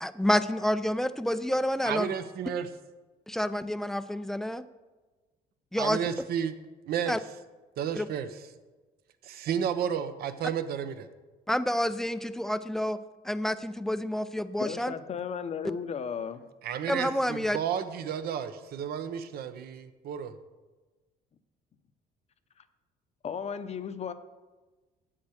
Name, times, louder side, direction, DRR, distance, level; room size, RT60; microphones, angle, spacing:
voice 1, 0.0-2.1 3.3-4.6 5.7-6.0 7.1-7.2 7.9-8.1 11.5-13.0 13.2-14.9 16.9-17.6, equal, ahead, 13 dB, 0.4 m, -28 dB
voice 2, 1.9-2.7 5.8-6.5 6.8-7.1 7.8-8.3 9.2-11.1 16.6-20.3, right 8 dB, 65° right, 10 dB, 0.9 m, -32 dB
voice 3, 14.6-16.4 23.2-24.1, left 7 dB, 40° left, 12 dB, 0.7 m, -35 dB
8.5 x 7.5 x 6.4 m, 1.2 s
cardioid pair, 110°, 17 cm